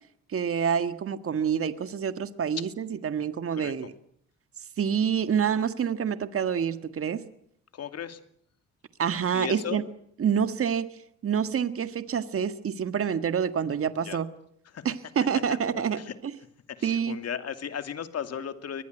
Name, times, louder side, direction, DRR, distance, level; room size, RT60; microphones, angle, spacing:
voice 1, 0.3-3.9 4.8-7.2 9.0-9.8 10.2-14.3 14.8-16.0 16.8-17.2, right 7 dB, 45° right, 11 dB, 1.7 m, -27 dB
voice 2, 7.7-8.2 9.3-9.8 14.0-14.2 14.7-14.8 15.5-16.1 16.7-18.8, left 8 dB, 55° left, 9 dB, 2.6 m, -36 dB
23.0 x 20.5 x 8.0 m, 0.67 s
cardioid pair, 90°, 30 cm